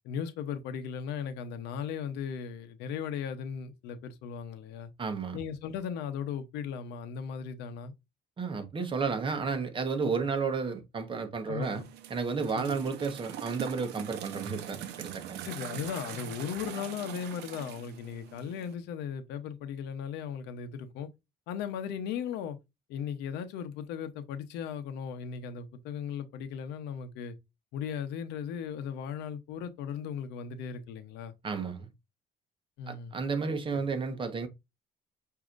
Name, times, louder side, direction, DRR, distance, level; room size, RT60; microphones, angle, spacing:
voice 1, 0.0-4.9 5.3-7.9 10.0-10.2 11.5-11.8 12.5-12.8 15.4-21.1 21.5-22.6 22.9-27.4 27.7-31.3 32.8-33.1 33.7-33.8, left 7 dB, 90° left, 0.8 m, -37 dB
voice 2, 5.0-5.4 8.4-11.8 12.1-15.5 31.4-31.9 32.9-34.5, right 5 dB, 30° right, 1.0 m, -32 dB
sound 1, 11.6-18.7, right 11 dB, 85° right, 0.7 m, -43 dB
6.2 x 2.8 x 2.5 m
cardioid pair, 110°, 17 cm